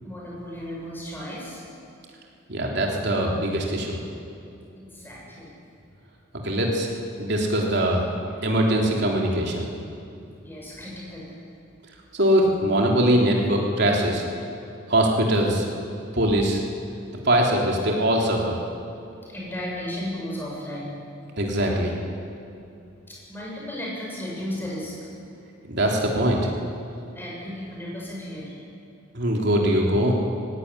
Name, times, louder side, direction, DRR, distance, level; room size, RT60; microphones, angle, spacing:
voice 1, 0.0-1.6 4.8-5.5 10.4-11.3 16.0-16.2 19.2-20.9 23.1-25.0 27.1-28.5, left 1 dB, 10° left, -4 dB, 6.5 m, -35 dB
voice 2, 2.5-4.0 6.4-6.9 7.2-8.0 8.4-9.7 12.1-14.2 14.9-15.7 16.1-16.6 17.3-18.6 21.4-21.9 25.7-26.5 29.1-30.1, right 1 dB, 55° right, -1 dB, 3.5 m, -22 dB
18.5 x 16.0 x 9.8 m, 2.7 s
head